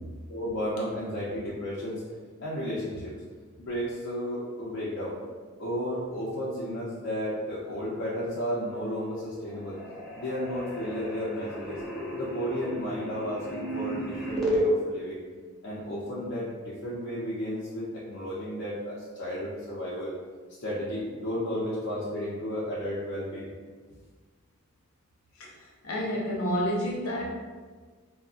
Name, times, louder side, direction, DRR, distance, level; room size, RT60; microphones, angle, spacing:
voice 1, 0.3-2.1 2.4-3.1 3.6-5.2 5.6-9.8 10.2-11.8 12.2-15.2 15.6-20.1 20.6-23.5, equal, 55° left, -8 dB, 0.5 m, -33 dB
sound 1, 8.7-9.2 9.5-14.6, right 1 dB, 5° left, 0.5 m, -34 dB
voice 2, 25.4-27.3, equal, 90° left, -4 dB, 0.7 m, -30 dB
3.6 x 2.0 x 2.3 m, 1.5 s
head